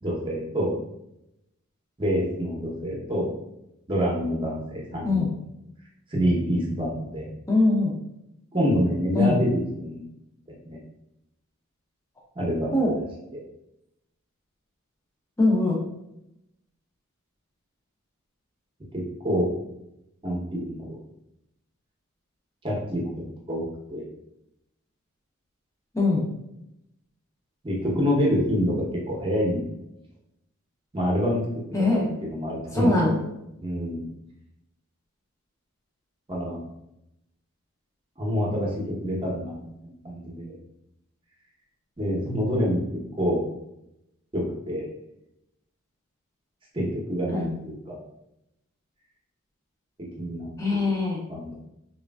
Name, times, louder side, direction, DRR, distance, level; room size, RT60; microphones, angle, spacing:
voice 1, 0.0-0.7 2.0-3.3 3.9-5.3 6.1-7.3 8.5-10.0 10.5-10.8 12.4-12.9 13.3-13.4 19.2-19.5 20.2-21.0 22.6-23.1 23.5-24.0 27.6-29.7 30.9-31.4 31.9-33.0 33.6-34.0 36.3-36.6 38.2-40.6 42.0-42.8 43.2-43.4 44.3-44.9 46.7-48.0 50.2-50.8 51.3-51.6, equal, 25° right, -3 dB, 0.7 m, -27 dB
voice 2, 7.5-7.9 9.1-9.4 12.7-12.9 15.4-15.8 25.9-26.2 31.7-32.1 32.7-33.2 47.3-47.5 50.6-51.2, left 2 dB, 15° left, -3 dB, 0.6 m, -22 dB
3.1 x 2.4 x 2.2 m, 0.84 s
head